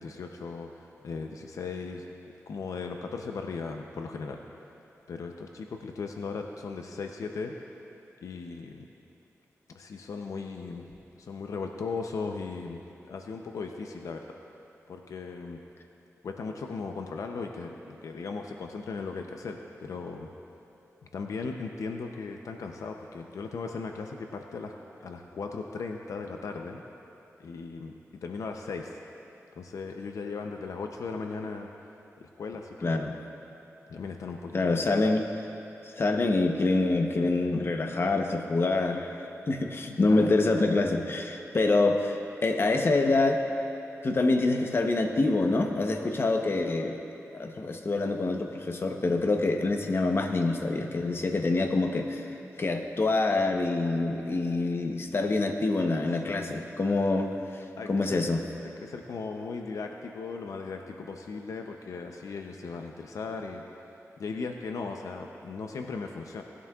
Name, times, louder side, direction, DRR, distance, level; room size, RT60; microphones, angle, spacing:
voice 1, 0.0-2.0 2.5-4.4 5.1-7.5 8.2-8.9 9.7-10.8 11.2-14.4 14.9-15.6 16.2-20.3 21.0-24.7 25.0-26.8 27.4-27.9 28.2-29.0 29.6-31.7 32.2-33.0 33.9-34.9 40.0-40.3 56.2-56.6 57.8-58.3 58.8-63.6 64.2-66.4, left 4 dB, 85° left, 3 dB, 0.6 m, -37 dB
voice 2, 32.8-33.2 34.5-35.2 35.8-39.1 39.5-43.4 44.0-47.0 47.3-52.3 52.6-57.3 57.9-58.4, left 2 dB, 45° left, 4 dB, 0.9 m, -26 dB
19.0 x 11.0 x 2.4 m, 2.9 s
wide cardioid pair, 85°, 5 cm